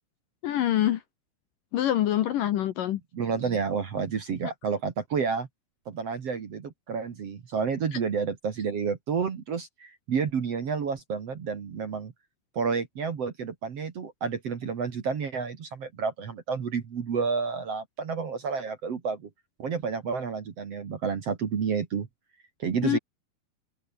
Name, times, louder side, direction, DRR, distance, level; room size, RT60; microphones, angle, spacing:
voice 1, 0.4-1.0 1.7-3.0 22.8-23.0, left 12 dB, 65° left, 2.4 m, -25 dB
voice 2, 3.1-5.5 5.9-12.1 12.5-19.3 19.6-22.1 22.6-23.0, right 5 dB, 45° right, 2.4 m, -30 dB
open air
omnidirectional pair, 4.9 m